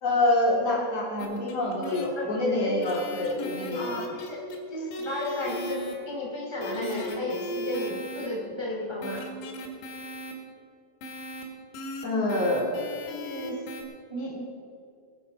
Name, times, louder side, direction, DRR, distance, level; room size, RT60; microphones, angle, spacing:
voice 1, 0.0-4.0 12.0-12.8, left 1 dB, 40° left, -3 dB, 2.8 m, -26 dB
sound 1, 1.2-2.1 2.7-4.6 4.9-5.9 6.6-8.3 9.0-10.3 11.0-11.4 11.7-12.0 12.3-13.8, left 1 dB, 75° left, 4.0 m, -37 dB
voice 2, 2.6-3.1 3.7-9.3 13.2-13.6 14.1-14.4, left 1 dB, 20° right, -3 dB, 0.7 m, -34 dB
22.0 x 8.5 x 5.3 m, 2.4 s
omnidirectional pair, 5.2 m